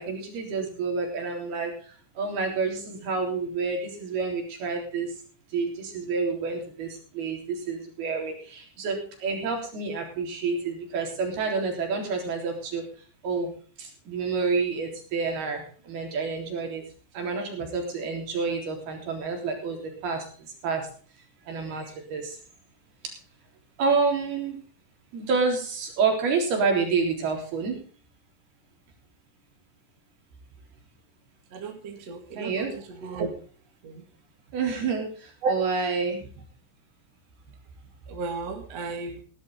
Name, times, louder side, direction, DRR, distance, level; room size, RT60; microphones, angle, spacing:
voice 1, 0.0-1.7 2.2-5.1 5.5-6.9 7.2-8.3 8.8-12.8 13.2-13.5 14.1-15.6 15.9-16.8 17.2-19.8 20.0-20.2 20.6-20.8 21.5-21.8 22.1-22.2 23.8-24.6 25.1-27.8 32.4-32.7 34.5-35.1 35.5-36.2, right 4 dB, 65° right, 2 dB, 5.6 m, -28 dB
voice 2, 31.5-32.5 33.0-33.3 33.8-34.0 35.4-35.5 38.1-39.2, right 4 dB, 45° right, 3 dB, 2.7 m, -32 dB
17.5 x 12.0 x 3.8 m, 0.40 s
omnidirectional pair, 4.9 m